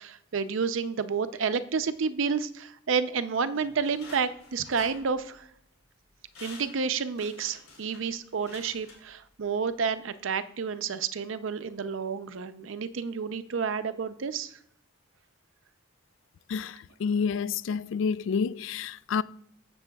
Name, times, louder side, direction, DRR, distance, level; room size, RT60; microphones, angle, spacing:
voice 1, 0.0-5.4 6.4-14.5, right 5 dB, 65° right, 0.5 m, -30 dB
sound 1, 3.5-5.6 6.0-6.1 6.3-9.5 9.9-10.0, left 3 dB, 85° left, 3.7 m, -50 dB
voice 2, 16.5-19.2, left 6 dB, 65° left, 0.3 m, -29 dB
14.5 x 6.8 x 2.3 m
head